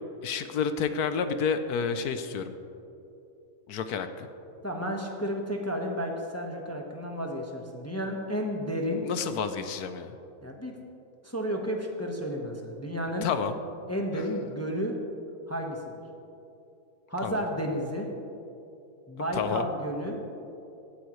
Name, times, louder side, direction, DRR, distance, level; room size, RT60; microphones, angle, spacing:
voice 1, 0.2-2.5 3.7-4.3 9.0-10.2 13.2-13.6 17.2-17.4 19.3-19.7, left 6 dB, 70° left, 9 dB, 1.2 m, -30 dB
voice 2, 4.6-9.0 10.4-10.7 11.2-13.3 13.9-14.9 15.5-15.9 17.1-18.1 19.1-20.2, equal, 10° left, 0 dB, 1.0 m, -32 dB
17.5 x 13.0 x 3.2 m, 2.9 s
omnidirectional pair, 1.7 m